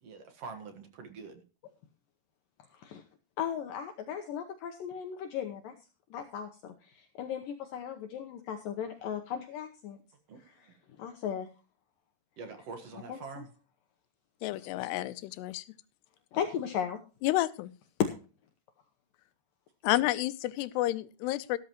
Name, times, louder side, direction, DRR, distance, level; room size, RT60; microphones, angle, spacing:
voice 1, 0.0-1.4 10.3-10.7 12.4-13.5, right 4 dB, 60° right, 7 dB, 1.8 m, -45 dB
voice 2, 3.4-5.7 6.1-10.0 11.0-11.5 14.6-14.7 16.3-17.0 18.0-18.1, left 8 dB, 70° left, 5 dB, 2.3 m, -35 dB
voice 3, 14.4-15.6 17.2-17.7 19.8-21.6, left 16 dB, 85° left, 15 dB, 2.8 m, -30 dB
14.0 x 13.0 x 3.0 m, 0.34 s
omnidirectional pair, 4.7 m